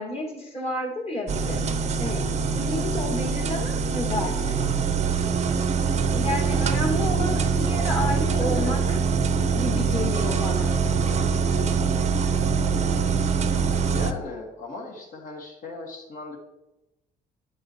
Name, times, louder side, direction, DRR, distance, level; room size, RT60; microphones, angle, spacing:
voice 1, 0.0-1.6 2.0-2.2 2.5-4.6 6.1-9.0 9.5-10.8, left 1 dB, 35° left, 0 dB, 2.3 m, -31 dB
sound 1, 1.3-14.1, right 5 dB, 40° right, 0.7 m, -24 dB
voice 2, 4.3-4.9 8.0-8.8 13.9-16.4, left 2 dB, 55° left, 1 dB, 2.1 m, -37 dB
10.0 x 6.4 x 3.2 m, 0.96 s
cardioid pair, 110°, 17 cm